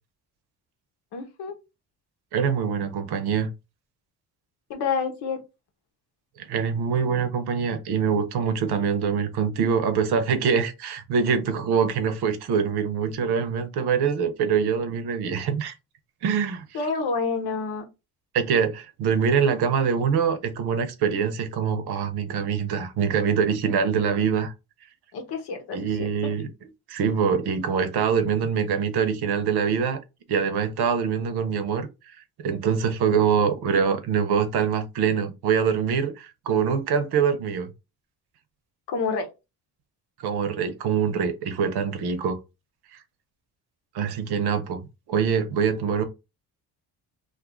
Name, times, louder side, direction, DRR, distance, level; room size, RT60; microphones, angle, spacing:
voice 1, 1.1-1.6 4.7-5.4 16.7-17.8 25.1-26.3 38.9-39.3, left 5 dB, 85° left, 1.0 m, -28 dB
voice 2, 2.3-3.5 6.4-15.8 16.2-16.6 18.3-24.5 25.7-26.5 26.9-30.0 30.3-31.9 32.4-37.7 40.2-42.4 42.9-43.0 43.9-46.0, right 6 dB, 80° right, 0.7 m, -24 dB
2.6 x 2.4 x 3.6 m
cardioid pair, 100°, 39 cm